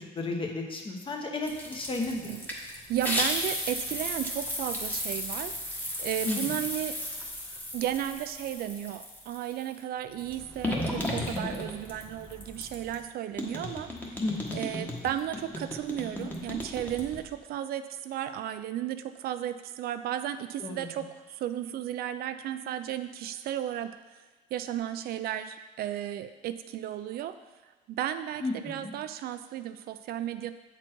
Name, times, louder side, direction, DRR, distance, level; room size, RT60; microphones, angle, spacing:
voice 1, 0.1-2.4 6.2-6.4 14.2-14.7 20.6-20.8 28.4-28.9, left 3 dB, 30° left, 2 dB, 1.1 m, -33 dB
sound 1, 1.5-9.6 10.1-13.1 13.4-17.3, left 1 dB, 10° left, 1.2 m, -35 dB
voice 2, 2.1-2.5 2.9-5.6 6.0-7.0 7.7-14.2 14.5-24.0 24.5-27.4 27.9-30.5, right 11 dB, 65° right, 10 dB, 0.4 m, -34 dB
7.5 x 4.4 x 4.5 m, 1.2 s
cardioid pair, 110°, 17 cm